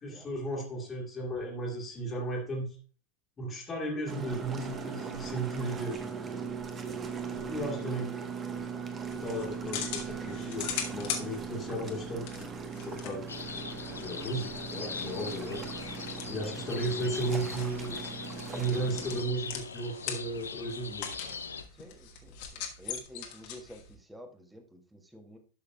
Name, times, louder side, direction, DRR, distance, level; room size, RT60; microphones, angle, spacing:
voice 1, 0.0-2.8 3.4-6.2 7.3-8.1 9.1-12.5 12.8-13.4 13.9-15.6 16.3-18.0 18.5-21.1, right 2 dB, 20° left, -4 dB, 1.8 m, -35 dB
sound 1, 4.1-19.2, right 5 dB, 20° right, 1.1 m, -39 dB
sound 2, 9.1-23.9, left 8 dB, 50° left, 1.3 m, -42 dB
sound 3, 13.3-21.6, left 5 dB, 75° left, 0.5 m, -41 dB
voice 2, 21.7-25.4, equal, 5° right, 5 dB, 1.3 m, -50 dB
12.0 x 6.6 x 2.3 m, 0.38 s
figure-of-eight pair, 90°, 0 cm